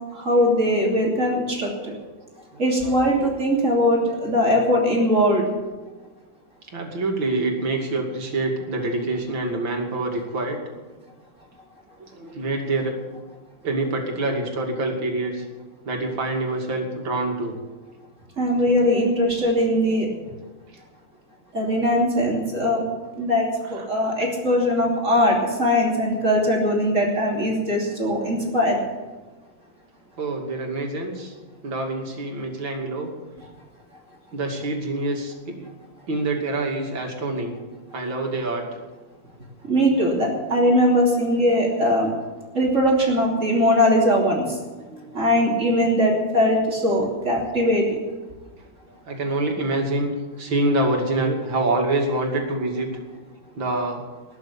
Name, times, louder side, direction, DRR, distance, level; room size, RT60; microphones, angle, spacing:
voice 1, 0.1-2.0 2.6-5.5 18.4-20.1 21.5-22.8 23.2-28.8 39.7-42.1 42.5-44.4 45.1-48.0, equal, 35° right, -1 dB, 3.3 m, -20 dB
voice 2, 2.5-3.3 6.7-10.6 12.0-12.9 13.6-15.5 15.8-17.6 23.6-23.9 24.2-24.3 30.2-31.3 31.6-33.1 34.3-35.7 36.1-37.6 37.9-38.6 44.9-45.2 49.0-50.1 50.4-52.9 53.5-54.0, right 2 dB, 70° right, 1 dB, 3.3 m, -26 dB
19.5 x 7.2 x 8.6 m, 1.3 s
omnidirectional pair, 2.2 m